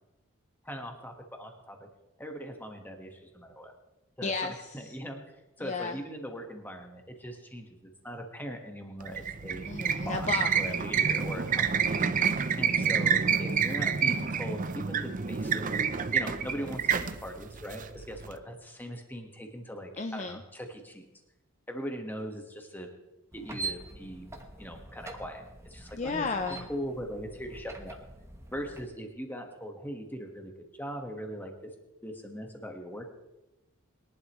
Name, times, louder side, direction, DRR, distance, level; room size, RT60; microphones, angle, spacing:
voice 1, 0.6-1.9 2.2-3.7 4.2-5.2 5.6-9.7 10.0-12.2 12.6-15.6 16.1-16.8 17.2-21.0 21.7-22.9 23.3-24.3 24.6-26.3 26.7-28.0 28.5-31.7 32.0-33.1, equal, 10° left, 3 dB, 1.4 m, -40 dB
voice 2, 4.2-5.0 5.6-6.0 9.7-10.5 12.8-13.1 20.0-20.4 25.9-26.7, left 4 dB, 35° left, 6 dB, 0.5 m, -34 dB
sound 1, 9.0-18.3, right 6 dB, 40° right, 0.6 m, -28 dB
sound 2, 23.3-28.9, right 3 dB, 15° right, 1.1 m, -43 dB
22.0 x 11.5 x 3.1 m, 1.0 s
head